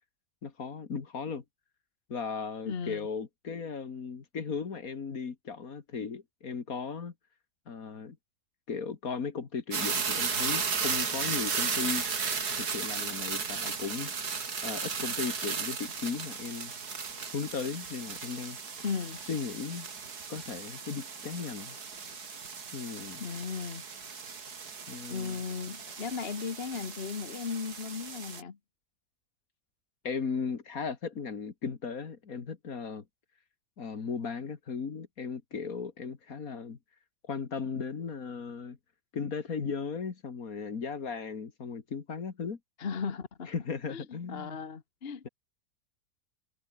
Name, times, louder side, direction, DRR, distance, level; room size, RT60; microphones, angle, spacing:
voice 1, 0.4-1.4 2.1-7.1 7.7-8.2 8.7-12.0 12.5-14.1 14.6-16.7 17.3-18.6 19.3-19.9 20.3-21.8 22.7-23.2 24.9-25.4 30.0-33.0 33.8-36.8 37.2-38.8 39.1-42.6 43.5-44.6, left 5 dB, 55° left, 2.3 m, -36 dB
voice 2, 2.7-3.1 18.8-19.2 23.2-23.8 25.1-28.6 42.8-43.5 43.9-45.3, left 6 dB, 40° left, 1.4 m, -36 dB
sound 1, 9.7-28.4, right 5 dB, 70° right, 2.8 m, -35 dB
omnidirectional pair, 1.8 m